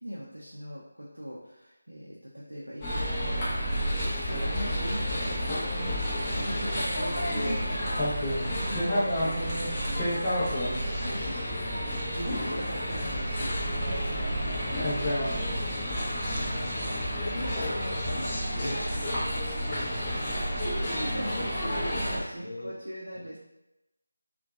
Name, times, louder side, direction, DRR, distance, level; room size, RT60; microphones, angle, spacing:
voice 1, 0.0-3.5 3.9-10.1 10.5-15.6 20.6-23.4, equal, 75° right, -5 dB, 0.4 m, -40 dB
sound 1, 2.8-22.2, equal, 15° left, 0.5 m, -30 dB
voice 2, 16.4-19.4 19.7-20.6 22.4-22.7 23.1-23.2, left 1 dB, 70° left, 0 dB, 0.4 m, -40 dB
2.7 x 2.2 x 2.2 m, 0.91 s
figure-of-eight pair, 160°, 0 cm